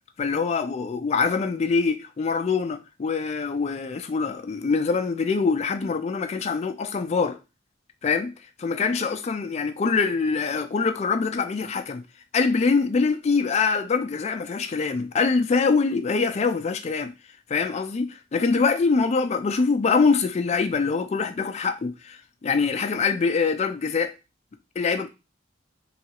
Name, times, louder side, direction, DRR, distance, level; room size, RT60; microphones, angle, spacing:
voice 1, 0.2-7.4 8.0-8.3 8.6-12.0 12.3-17.1 17.5-24.1 24.8-25.1, left 4 dB, 35° left, 0.3 m, -24 dB
3.0 x 2.4 x 2.8 m
head